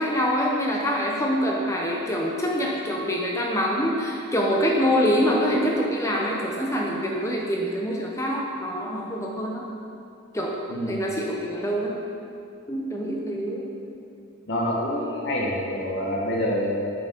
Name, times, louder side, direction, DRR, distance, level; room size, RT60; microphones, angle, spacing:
voice 1, 0.0-9.7 10.3-10.5 10.9-12.0 12.7-13.7, equal, 15° left, -2 dB, 0.7 m, -25 dB
voice 2, 10.7-11.0 14.5-16.9, equal, 50° left, -3 dB, 1.2 m, -26 dB
7.7 x 6.6 x 5.2 m, 2.6 s
head